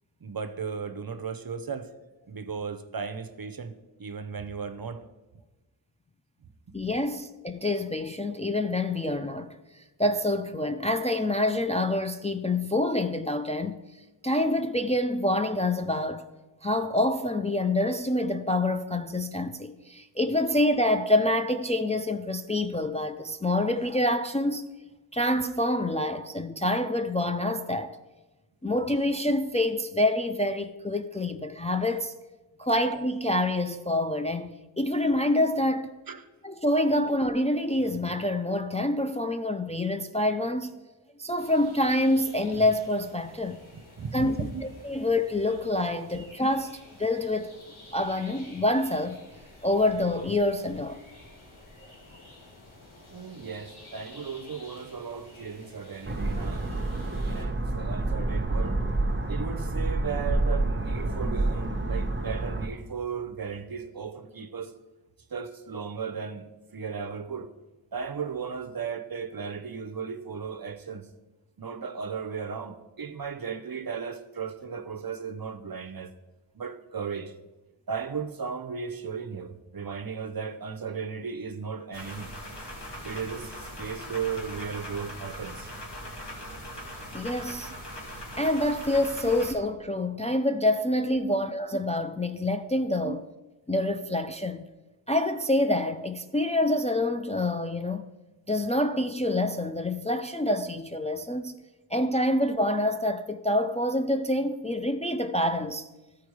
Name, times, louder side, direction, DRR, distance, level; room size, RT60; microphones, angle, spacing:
voice 1, 0.2-1.9 2.3-3.7 4.0-5.0 6.7-6.8 36.1-36.3 43.7-44.6 53.1-56.7 57.2-58.8 59.3-64.7 65.3-66.5 66.7-67.5 67.9-71.1 71.6-76.1 76.5-77.3 77.9-82.3 83.0-85.7 91.2-91.4 93.1-93.2, right 6 dB, 50° right, 0.7 m, -36 dB
voice 2, 6.7-9.6 10.0-13.8 14.2-16.2 16.6-24.6 25.1-28.0 28.6-32.1 32.6-35.9 36.4-40.7 41.2-43.6 44.1-44.4 44.8-47.6 47.9-49.2 49.6-51.0 87.1-87.7 88.4-93.2 93.7-94.6 95.1-98.0 98.5-101.5 101.9-105.9, left 1 dB, 15° left, 0.4 m, -26 dB
sound 1, 41.4-57.4, left 2 dB, 90° left, 2.1 m, -51 dB
sound 2, 56.0-62.7, right 2 dB, 25° right, 1.0 m, -28 dB
sound 3, 81.9-89.5, equal, 60° left, 2.2 m, -40 dB
13.5 x 4.7 x 4.7 m
wide cardioid pair, 55°, 47 cm